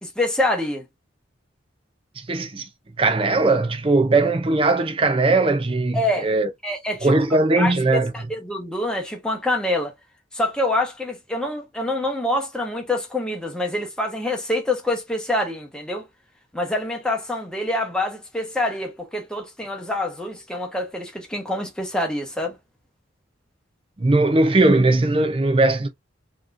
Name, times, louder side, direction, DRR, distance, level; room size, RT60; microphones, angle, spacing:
voice 1, 0.0-0.8 5.9-6.3 6.6-7.1 7.6-9.9 10.3-16.0 16.5-22.6, left 1 dB, 5° left, 1.1 m, -26 dB
voice 2, 2.2-2.7 3.0-6.5 7.0-8.1 24.0-25.9, right 2 dB, 25° right, 0.5 m, -19 dB
4.6 x 3.0 x 2.5 m
head